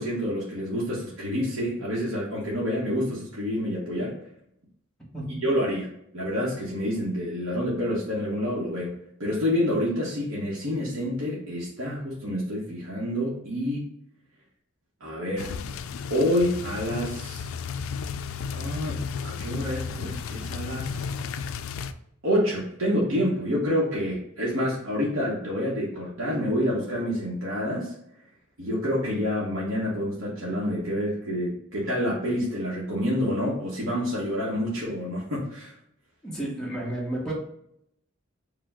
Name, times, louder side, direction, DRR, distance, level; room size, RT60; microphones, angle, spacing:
voice 1, 0.0-4.2 5.4-8.9 9.2-13.9 15.0-15.5 16.1-17.4 18.5-21.0 22.2-27.9 28.6-35.7, equal, 80° right, -6 dB, 1.0 m, -28 dB
sound 1, 15.4-21.9, left 6 dB, 85° left, 0.3 m, -33 dB
voice 2, 36.2-37.3, right 1 dB, 5° left, -5 dB, 1.1 m, -31 dB
4.9 x 2.2 x 3.5 m, 0.72 s
head